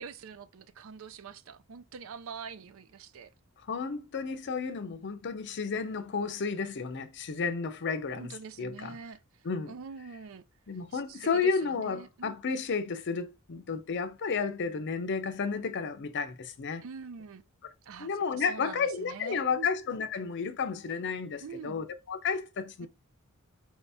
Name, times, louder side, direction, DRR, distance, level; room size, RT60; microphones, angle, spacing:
voice 1, 0.0-3.3 8.2-9.2 9.7-10.4 10.9-12.4 16.8-17.4 17.8-18.1 18.4-19.7 21.3-21.8 22.8-22.9, right 5 dB, 65° right, 0.4 m, -44 dB
voice 2, 3.7-8.3 8.6-9.0 9.4-9.7 10.7-16.8 18.0-22.9, left 5 dB, 55° left, 0.5 m, -32 dB
4.8 x 2.7 x 3.4 m
head